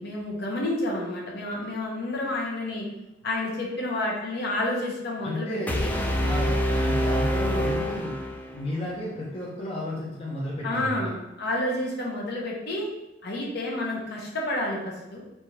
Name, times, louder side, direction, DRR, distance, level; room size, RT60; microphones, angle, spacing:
voice 1, 0.0-2.9 3.2-5.9 10.6-12.9 13.2-15.2, left 1 dB, 60° left, -2 dB, 1.0 m, -30 dB
voice 2, 5.2-5.9 6.2-8.2 8.5-11.1, left 1 dB, 30° left, -5 dB, 0.7 m, -33 dB
sound 1, 5.7-8.7, equal, 10° left, 0.4 m, -26 dB
3.5 x 2.8 x 4.5 m, 0.95 s
head